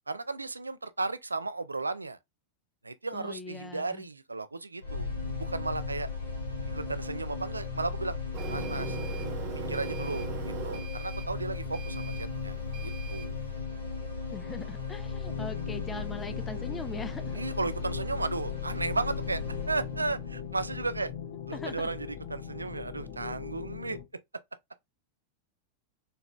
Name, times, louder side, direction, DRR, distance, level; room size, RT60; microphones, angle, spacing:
voice 1, 0.1-2.2 2.8-5.1 5.4-6.1 6.7-8.2 8.5-9.0 9.5-13.4 17.3-21.1 21.5-24.0, right 3 dB, 80° right, 0.4 m, -34 dB
voice 2, 3.1-4.0 14.3-17.4 21.5-21.8, left 3 dB, 15° left, 0.5 m, -41 dB
sound 1, 4.8-22.8, left 4 dB, 75° left, 1.4 m, -36 dB
Printer, 8.3-13.3, right 8 dB, 40° right, 0.9 m, -41 dB
sound 2, 15.2-24.0, left 8 dB, 55° left, 1.4 m, -41 dB
4.0 x 3.3 x 2.3 m
figure-of-eight pair, 90°, 0 cm